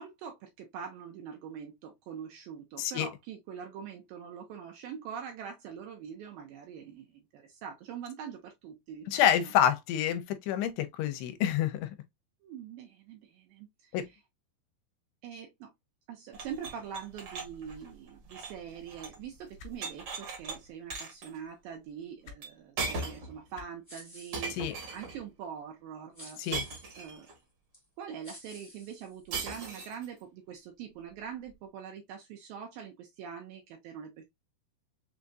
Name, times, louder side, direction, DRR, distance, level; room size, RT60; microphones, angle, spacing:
voice 1, 0.0-9.2 12.4-14.2 15.2-15.7 16.1-26.4 27.0-27.3 28.0-34.3, right 7 dB, 75° right, 2.2 m, -44 dB
voice 2, 2.8-3.1 9.1-11.9 13.9-14.1 24.5-24.7 26.4-26.6, left 10 dB, 90° left, 2.8 m, -28 dB
sound 1, 16.3-19.2 19.5-20.6 20.9-21.3 22.4-22.5 22.8-23.3 24.3-25.2 26.5-27.3 29.3-30.1, right 3 dB, 55° right, 1.5 m, -38 dB
sound 2, 19.6-19.7 20.9-21.0 22.2-22.4 23.5-23.7 24.9-25.0, left 5 dB, 75° left, 2.4 m, -47 dB
sound 3, 23.8-25.0 26.1-27.1 27.7-27.8 28.2-29.6, left 1 dB, 45° left, 0.4 m, -52 dB
6.5 x 2.4 x 2.5 m
omnidirectional pair, 4.8 m